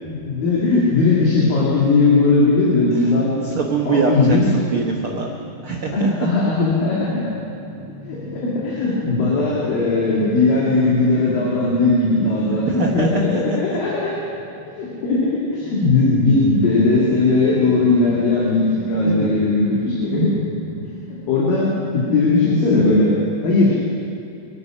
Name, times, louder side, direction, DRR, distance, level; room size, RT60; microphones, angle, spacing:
voice 1, 0.2-3.3 3.9-4.4 5.9-7.3 8.1-14.2 14.7-20.3 21.3-23.1 23.4-23.8, left 3 dB, 70° left, -6 dB, 4.1 m, -18 dB
voice 2, 3.4-5.3 5.6-6.1 12.7-13.4 13.7-13.8 19.1-19.3, right 5 dB, 85° right, 0 dB, 1.2 m, -23 dB
sound 1, 3.6-21.4, left 1 dB, 40° left, 4.5 m, -37 dB
24.0 x 9.7 x 6.2 m, 2.7 s
omnidirectional pair, 4.2 m